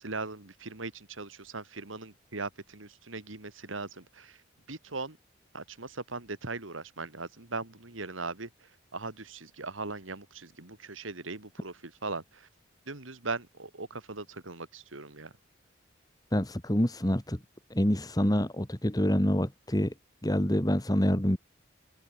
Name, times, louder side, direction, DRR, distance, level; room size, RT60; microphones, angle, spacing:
voice 1, 0.0-4.4 4.7-5.2 5.5-12.5 12.9-15.3, right 3 dB, 85° right, 2.6 m, -39 dB
voice 2, 16.3-17.4 17.7-19.9 20.2-21.4, equal, 20° left, 1.8 m, -26 dB
head